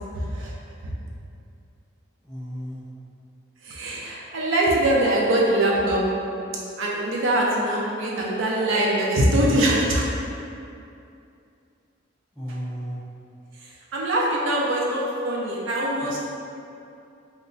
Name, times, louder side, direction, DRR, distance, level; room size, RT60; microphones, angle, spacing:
voice 1, 0.1-0.5 0.8-0.9 3.6-6.0 6.8-10.1 13.6-16.2, right 1 dB, 80° right, -3 dB, 0.5 m, -23 dB
voice 2, 2.2-2.8 12.3-13.0, equal, 5° left, -13 dB, 0.4 m, -33 dB
3.1 x 2.1 x 3.8 m, 2.6 s
head